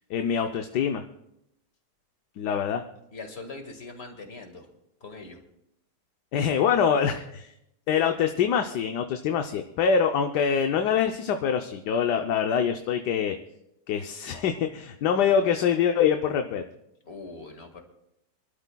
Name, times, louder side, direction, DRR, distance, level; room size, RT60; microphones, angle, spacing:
voice 1, 0.1-1.0 2.4-2.8 6.3-7.5 7.9-13.4 13.9-16.6, left 7 dB, 75° left, 6 dB, 1.3 m, -24 dB
voice 2, 3.1-4.7 5.0-5.4 17.0-17.8, left 3 dB, 40° left, 4 dB, 2.0 m, -41 dB
27.5 x 12.0 x 2.3 m, 0.81 s
omnidirectional pair, 1.8 m